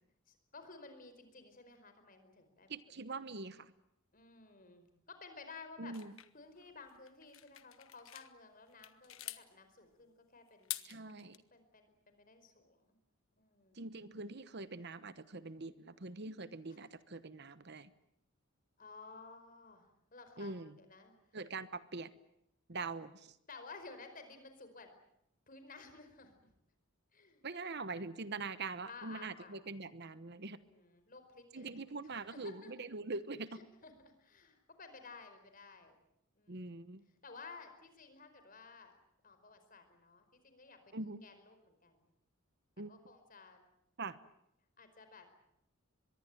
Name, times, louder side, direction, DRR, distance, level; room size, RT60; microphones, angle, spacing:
voice 1, 0.3-2.8 4.1-5.9 6.3-11.1 11.5-13.0 13.4-13.8 18.8-21.1 23.5-24.9 25.5-26.5 27.1-27.4 28.8-29.6 30.7-32.7 33.5-36.0 36.3-36.9 37.2-38.9 39.2-42.0 42.9-43.6 44.8-45.3, left 4 dB, 40° left, 8 dB, 4.8 m, -55 dB
voice 2, 2.7-3.7 5.8-6.1 10.8-11.4 13.7-17.9 20.4-20.8 21.3-22.1 22.7-23.4 27.4-30.6 31.5-33.6 36.5-37.0 40.9-41.2 42.8-42.9 44.0-44.2, right 3 dB, 50° right, 14 dB, 1.1 m, -43 dB
sound 1, 5.9-8.3 8.7-9.4 10.5-11.4, left 15 dB, 75° left, 1.4 m, -46 dB
24.5 x 22.0 x 9.1 m, 0.78 s
head